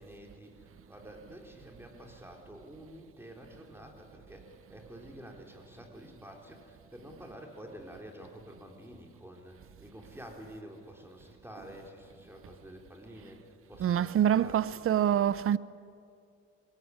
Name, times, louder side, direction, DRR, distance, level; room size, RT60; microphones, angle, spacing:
voice 1, 0.0-14.9, equal, 10° right, 3.8 m, -49 dB
voice 2, 13.8-15.6, right 10 dB, 45° right, 0.6 m, -26 dB
22.0 x 17.5 x 9.8 m
cardioid pair, 90°, 30 cm